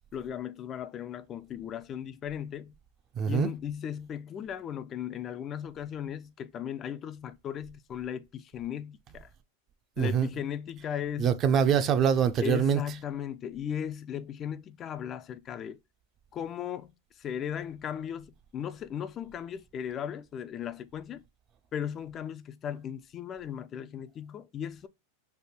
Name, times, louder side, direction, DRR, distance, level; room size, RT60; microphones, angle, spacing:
voice 1, 0.1-2.8 3.3-9.3 10.0-11.4 12.4-15.8 16.3-16.9 17.2-21.2 21.7-24.9, left 9 dB, 30° left, 0.3 m, -37 dB
voice 2, 3.2-3.5 10.0-10.3 11.2-12.8, right 7 dB, 35° right, 0.5 m, -24 dB
3.4 x 2.1 x 4.1 m
hypercardioid pair, 115°, 0 cm